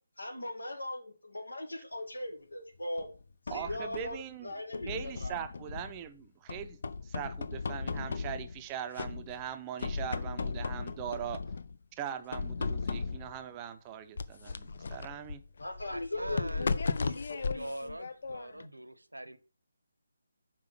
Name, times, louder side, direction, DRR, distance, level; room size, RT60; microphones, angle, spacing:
voice 1, 0.2-3.1 3.5-4.2 4.4-5.4 15.6-17.7, left 1 dB, 80° left, 2.0 m, -39 dB
sound 1, 3.0-4.2 4.7-6.1 6.5-8.6 9.0-9.5 9.8-11.8 12.3-13.4 14.2-18.7, left 4 dB, 55° left, 0.6 m, -36 dB
voice 2, 3.5-4.5 4.9-6.8 7.0-11.4 12.0-15.4, right 10 dB, 20° right, 0.6 m, -41 dB
voice 3, 15.9-17.2 17.5-19.4, right 1 dB, 85° right, 0.8 m, -43 dB
5.6 x 4.7 x 5.9 m
figure-of-eight pair, 150°, 0 cm